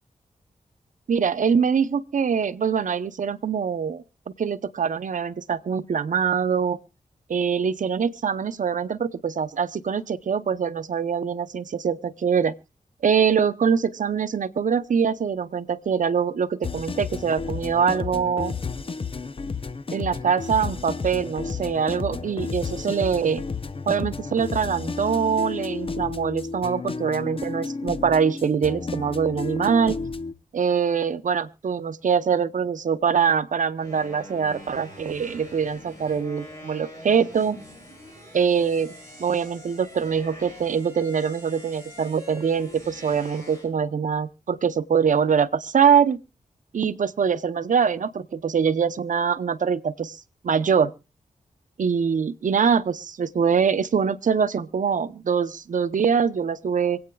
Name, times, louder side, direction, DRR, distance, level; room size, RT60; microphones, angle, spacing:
voice 1, 1.1-4.0 4.4-6.8 7.3-12.5 13.0-18.5 19.9-23.4 23.9-30.0 30.5-37.6 38.3-38.9 39.2-46.2 46.7-50.9 51.8-57.0, right 6 dB, 70° right, 0.7 m, -23 dB
sound 1, 16.6-30.3, left 4 dB, 40° left, 0.7 m, -32 dB
sound 2, 33.8-43.7, left 1 dB, 20° left, 7.8 m, -44 dB
26.0 x 8.7 x 2.3 m
cardioid pair, 65°, 14 cm